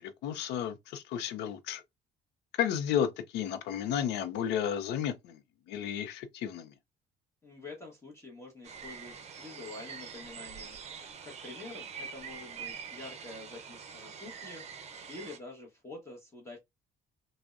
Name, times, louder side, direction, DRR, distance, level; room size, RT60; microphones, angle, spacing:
voice 1, 0.0-1.8 2.6-5.4 5.7-6.7, left 9 dB, 85° left, 0.5 m, -32 dB
voice 2, 7.4-16.6, left 2 dB, 15° left, 0.9 m, -47 dB
sound 1, 8.6-15.4, right 6 dB, 40° right, 0.6 m, -45 dB
3.4 x 2.1 x 2.4 m
cardioid pair, 110°, 17 cm